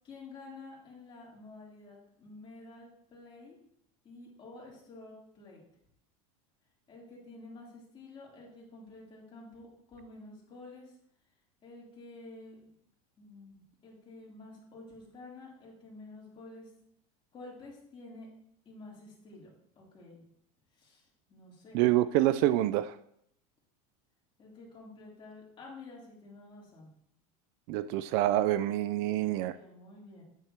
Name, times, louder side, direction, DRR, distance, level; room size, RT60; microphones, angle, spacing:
voice 1, 0.0-3.6 4.0-5.6 6.9-10.9 11.6-12.6 13.2-16.7 17.3-18.3 18.6-19.5 19.7-20.2 20.7-21.8 24.4-26.9 29.2-30.2, left 2 dB, 25° left, -4 dB, 3.3 m, -50 dB
voice 2, 21.7-22.9 27.7-29.5, right 14 dB, 55° right, 14 dB, 0.4 m, -27 dB
9.0 x 7.9 x 3.0 m, 0.72 s
supercardioid pair, 145°, 19 cm